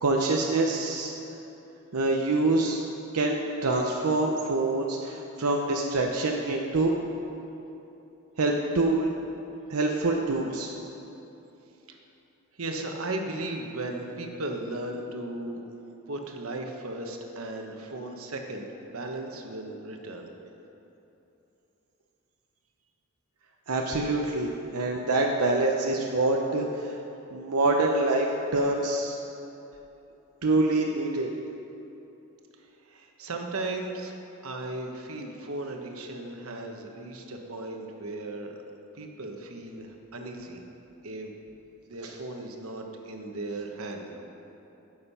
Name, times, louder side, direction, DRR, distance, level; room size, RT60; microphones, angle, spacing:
voice 1, 0.0-1.1 1.9-2.8 3.1-7.0 8.4-9.1 9.7-10.7 23.7-27.0 27.3-29.2 30.4-31.3 42.0-42.1, right 2 dB, 90° right, 1 dB, 0.8 m, -25 dB
voice 2, 12.6-15.7 16.1-20.3 32.6-34.2 34.4-38.6 38.9-40.6 41.0-41.3 41.9-44.2, right 2 dB, 70° right, 3 dB, 1.2 m, -36 dB
15.5 x 6.7 x 5.6 m, 3.0 s
head